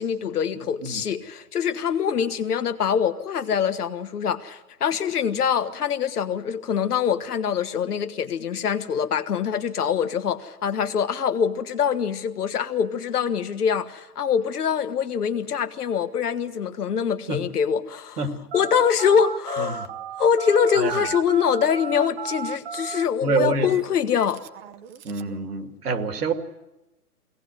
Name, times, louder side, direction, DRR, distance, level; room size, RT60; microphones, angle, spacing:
voice 1, 0.0-18.2 18.5-19.9 20.2-24.4, left 7 dB, 70° left, 10 dB, 1.5 m, -24 dB
Telephone, 18.5-25.4, right 7 dB, 40° right, 1.0 m, -35 dB
voice 2, 23.2-23.7 25.0-26.3, right 4 dB, 75° right, 7 dB, 2.4 m, -26 dB
21.5 x 17.5 x 7.8 m, 0.96 s
hypercardioid pair, 145°, 47 cm